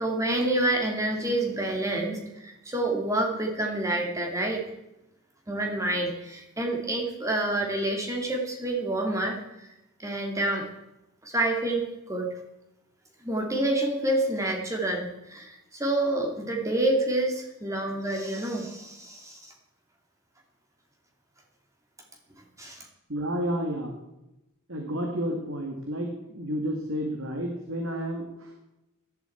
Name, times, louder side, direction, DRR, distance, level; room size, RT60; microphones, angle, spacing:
voice 1, 0.0-4.7 5.5-9.7 10.0-10.7 11.2-12.3 13.2-19.5 22.6-22.9, right 1 dB, 15° right, 1 dB, 2.4 m, -28 dB
voice 2, 23.1-24.0 24.7-28.5, equal, 60° right, 2 dB, 2.1 m, -31 dB
17.0 x 12.0 x 4.6 m, 0.92 s
head